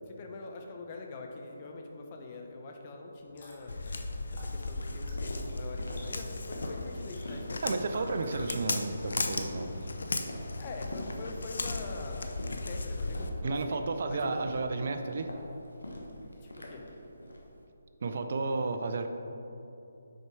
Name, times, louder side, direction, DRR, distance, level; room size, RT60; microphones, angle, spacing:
voice 1, 0.1-3.7 4.3-7.7 8.0-8.2 10.6-13.8 14.1-14.5 16.4-16.9, left 3 dB, 35° left, 2 dB, 0.8 m, -44 dB
sound 1, 3.1-8.5, left 1 dB, 50° left, 1.4 m, -54 dB
Walk footsteps, 3.7-13.3, left 2 dB, 70° left, 0.5 m, -36 dB
Walk footsteps 2, 5.1-17.5, left 1 dB, 90° left, 1.1 m, -45 dB
voice 2, 7.6-9.9 13.4-15.3 18.0-19.1, right 3 dB, 55° right, 7 dB, 0.5 m, -32 dB
6.5 x 4.5 x 4.6 m, 2.9 s
figure-of-eight pair, 150°, 0 cm